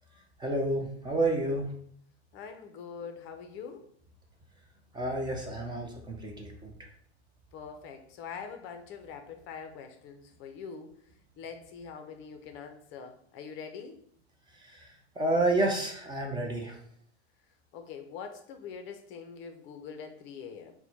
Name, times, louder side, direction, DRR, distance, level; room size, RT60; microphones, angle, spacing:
voice 1, 0.4-1.7 4.9-6.9 14.6-16.8, right 2 dB, 15° right, 1 dB, 0.6 m, -30 dB
voice 2, 2.3-3.8 7.5-10.9 11.4-14.0 17.7-20.7, left 6 dB, 40° left, 6 dB, 0.5 m, -43 dB
4.2 x 2.2 x 4.2 m, 0.62 s
hypercardioid pair, 115°, 33 cm